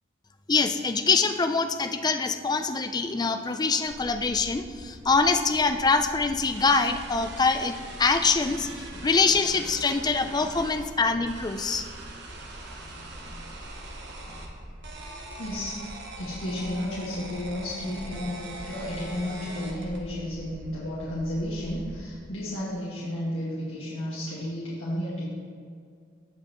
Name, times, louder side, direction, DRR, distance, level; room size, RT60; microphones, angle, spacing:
voice 1, 0.5-8.7 9.0-11.9, left 4 dB, 20° left, 8 dB, 0.4 m, -24 dB
sound 1, 3.8-22.1, equal, 80° right, 1.4 m, -45 dB
sound 2, 6.5-10.8 11.3-14.5 14.8-20.0, right 2 dB, 60° right, 1.2 m, -43 dB
voice 2, 12.8-13.5 14.3-14.4 15.4-15.8 16.2-25.2, left 1 dB, 75° left, -9 dB, 1.9 m, -33 dB
15.5 x 5.5 x 3.0 m, 2.1 s
head